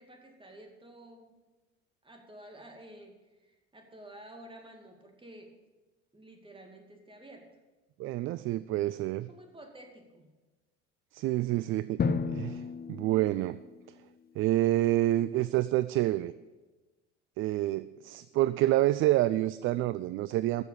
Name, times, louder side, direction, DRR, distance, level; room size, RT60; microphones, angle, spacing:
voice 1, 0.0-1.4 2.0-5.6 6.1-7.6 9.3-10.3, right 1 dB, 15° right, 3 dB, 2.4 m, -51 dB
voice 2, 8.0-9.3 11.1-12.0 12.3-12.6 12.9-13.6 14.4-16.3 17.4-20.6, right 15 dB, 35° right, 16 dB, 0.4 m, -28 dB
Drum, 12.0-13.9, left 5 dB, 25° left, 0.8 m, -33 dB
14.5 x 6.9 x 6.7 m, 1.2 s
figure-of-eight pair, 60°, 36 cm